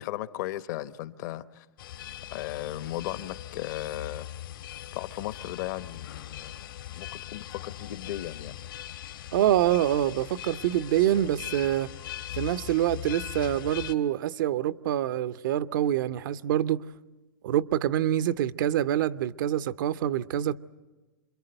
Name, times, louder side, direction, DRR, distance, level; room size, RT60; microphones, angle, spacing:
voice 1, 0.0-1.7 2.3-4.3 4.9-6.6 6.9-8.6, left 14 dB, 55° left, 1.0 m, -36 dB
sound 1, 1.8-13.9, left 12 dB, 75° left, 1.6 m, -40 dB
voice 2, 9.3-11.9 12.3-16.9 17.4-20.6, right 12 dB, 65° right, 0.7 m, -26 dB
27.5 x 22.0 x 7.9 m
hypercardioid pair, 125°, 12 cm